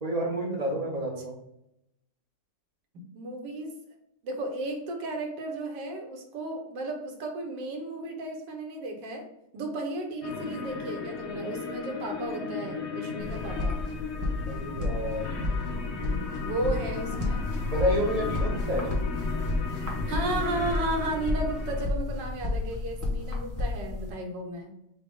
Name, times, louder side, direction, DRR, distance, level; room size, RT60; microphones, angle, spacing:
voice 1, 0.0-1.4 14.5-15.3 17.6-18.9, equal, 50° right, -2 dB, 0.4 m, -29 dB
voice 2, 2.9-3.7 4.2-9.3 9.5-13.8 16.4-17.4 20.1-24.7, right 2 dB, 85° right, 3 dB, 1.6 m, -34 dB
sound 1, 10.2-21.8, left 4 dB, 55° left, 0.8 m, -36 dB
sound 2, 13.2-24.1, left 2 dB, 15° right, 0.8 m, -31 dB
6.4 x 2.2 x 3.6 m, 0.83 s
omnidirectional pair, 1.9 m